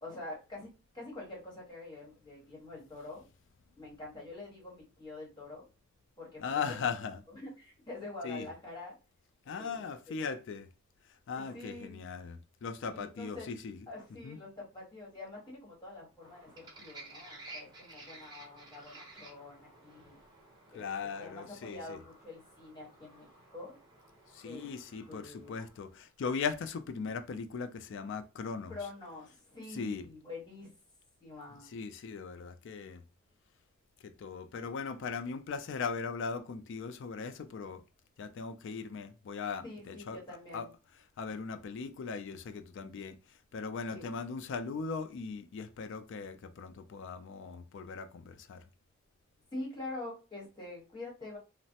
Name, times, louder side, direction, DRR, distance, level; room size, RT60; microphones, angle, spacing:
voice 1, 0.0-3.2 3.8-5.7 6.2-6.9 7.3-8.9 9.5-10.2 11.4-12.0 12.9-13.5 13.9-20.2 20.7-23.3 23.5-23.8 24.4-24.7 25.1-25.6 28.7-30.7 31.2-31.7 39.6-40.7 43.9-44.1 49.5-51.4, left 2 dB, 20° left, 1.2 m, -46 dB
voice 2, 6.4-7.2 8.2-8.5 9.5-10.7 11.3-13.8 14.2-14.4 20.7-22.0 24.3-28.7 29.7-30.1 31.7-33.0 34.0-37.8 38.2-40.2 40.5-40.7 41.2-43.2 43.5-48.6, left 5 dB, 60° left, 0.3 m, -38 dB
sound 1, 16.2-26.0, right 2 dB, 20° right, 0.8 m, -54 dB
3.1 x 2.0 x 2.8 m
head